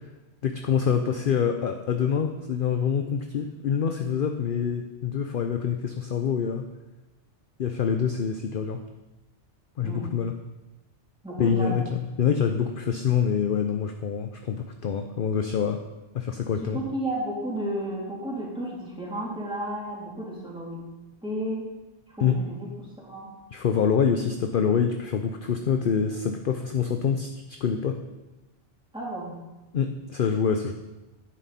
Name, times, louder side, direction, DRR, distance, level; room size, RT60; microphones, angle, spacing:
voice 1, 0.4-6.6 7.6-8.8 9.8-10.3 11.4-15.8 16.1-16.8 22.2-22.4 23.5-27.3 27.6-28.0 29.7-30.7, left 7 dB, 55° left, 5 dB, 0.8 m, -26 dB
voice 2, 11.2-11.8 16.6-20.8 21.2-21.7 22.1-22.7 23.0-23.3 28.9-29.3, right 1 dB, 5° right, -6 dB, 3.1 m, -32 dB
11.0 x 9.4 x 4.2 m, 1.0 s
omnidirectional pair, 1.2 m